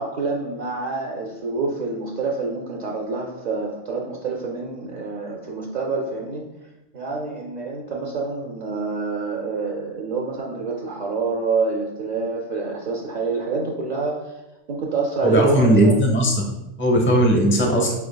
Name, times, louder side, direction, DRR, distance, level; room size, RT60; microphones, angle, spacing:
voice 1, 0.0-6.4 6.9-14.4 14.7-16.0, right 4 dB, 65° right, -2 dB, 0.4 m, -27 dB
voice 2, 15.2-16.3 16.8-17.9, right 1 dB, 20° left, 1 dB, 0.3 m, -17 dB
5.0 x 3.4 x 2.2 m, 0.96 s
omnidirectional pair, 1.3 m